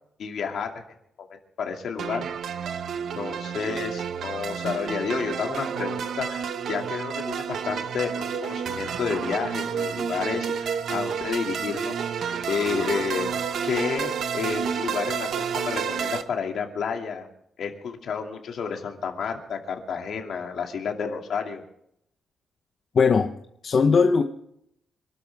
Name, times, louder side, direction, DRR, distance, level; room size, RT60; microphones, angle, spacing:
voice 1, 0.2-0.8 1.6-2.3 3.1-12.0 12.5-13.4 13.6-17.3 17.6-21.6, left 6 dB, 60° left, 3 dB, 2.5 m, -30 dB
sound 1, 2.0-16.2, right 7 dB, 60° right, 1.0 m, -30 dB
voice 2, 22.9-23.4 23.6-24.2, left 5 dB, 40° left, 5 dB, 0.9 m, -19 dB
27.0 x 12.5 x 3.6 m, 0.73 s
wide cardioid pair, 165°, 0 cm